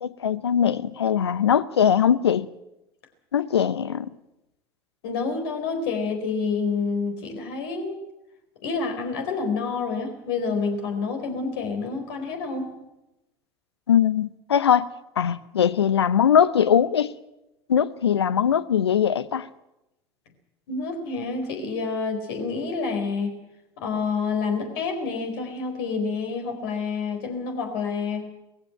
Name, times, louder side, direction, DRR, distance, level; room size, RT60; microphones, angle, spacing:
voice 1, 0.0-2.5 3.3-4.1 13.9-14.9 15.2-17.1 17.7-19.5, left 8 dB, 80° left, 0.8 m, -21 dB
voice 2, 5.0-8.0 8.6-12.7 20.7-23.3 23.8-28.3, left 4 dB, 65° left, 4.2 m, -28 dB
19.5 x 15.5 x 8.9 m
figure-of-eight pair, 75°, 14 cm